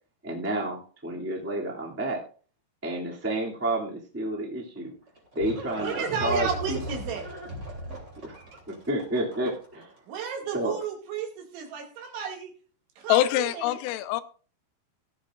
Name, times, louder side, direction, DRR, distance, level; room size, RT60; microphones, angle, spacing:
voice 1, 0.2-2.2 2.8-4.9 5.3-6.8 8.2-9.9 10.5-10.8, right 1 dB, 10° right, -3 dB, 0.8 m, -30 dB
Livestock farm animals working animals, 4.8-9.8, right 1 dB, 25° right, 3.1 m, -37 dB
voice 2, 5.8-7.3 10.1-12.5 13.0-13.8, right 7 dB, 70° right, 1 dB, 4.5 m, -33 dB
voice 3, 13.1-14.2, left 13 dB, 90° left, 12 dB, 3.4 m, -24 dB
17.5 x 12.0 x 2.6 m, 0.40 s
omnidirectional pair, 5.7 m